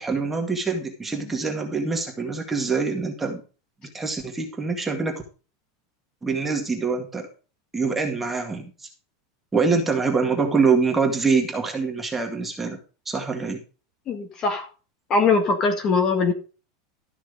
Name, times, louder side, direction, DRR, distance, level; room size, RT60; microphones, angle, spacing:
voice 1, 0.0-3.4 3.9-5.2 6.2-7.3 7.7-8.7 9.5-12.8 13.1-13.6, right 4 dB, 10° right, 2 dB, 2.0 m, -24 dB
voice 2, 14.1-14.7 15.1-16.3, left 4 dB, 25° left, 6 dB, 1.8 m, -21 dB
13.5 x 6.2 x 5.0 m, 0.34 s
supercardioid pair, 170°, 2 cm